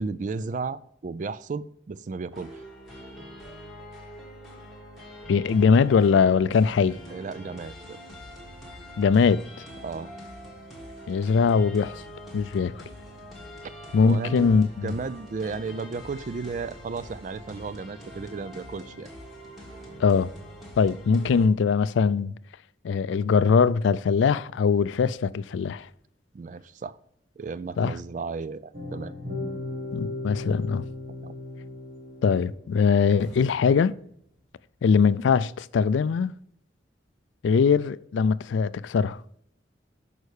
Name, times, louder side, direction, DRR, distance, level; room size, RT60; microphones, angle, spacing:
voice 1, 0.0-2.6 7.1-8.0 9.8-10.1 14.0-19.1 26.3-27.0 27.4-29.1 31.2-31.3, right 4 dB, 40° right, 0.3 m, -34 dB
sound 1, 2.3-21.5, equal, ahead, 1.6 m, -44 dB
voice 2, 5.3-7.0 9.0-9.4 11.1-12.0 12.3-12.8 13.9-14.9 20.0-20.3 20.8-22.3 22.8-25.9 27.8-27.9 29.9-30.9 32.2-33.9 34.8-36.3 37.4-39.2, left 5 dB, 80° left, 0.3 m, -21 dB
sound 2, 28.7-33.0, left 2 dB, 65° right, 1.6 m, -36 dB
sound 3, 33.2-34.7 35.0-35.1, equal, 85° right, 2.7 m, -52 dB
6.4 x 5.4 x 4.7 m
head